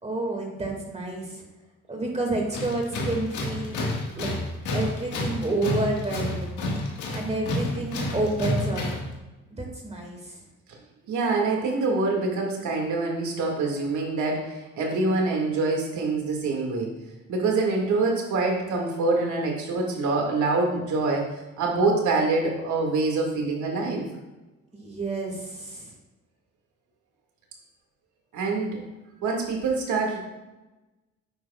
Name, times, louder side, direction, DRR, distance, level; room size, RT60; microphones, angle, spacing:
voice 1, 0.0-1.4 1.9-3.8 4.1-4.3 4.7-6.6 7.1-8.8 9.6-10.4 24.7-25.9, right 2 dB, 20° right, 0 dB, 2.1 m, -29 dB
Tools, 2.5-9.1, left 1 dB, 75° left, 1.8 m, -30 dB
voice 2, 11.1-16.9 17.3-24.1 28.3-28.8 29.2-30.2, right 3 dB, 75° right, 0 dB, 2.1 m, -25 dB
9.3 x 9.0 x 2.4 m, 1.1 s
cardioid pair, 90°, 30 cm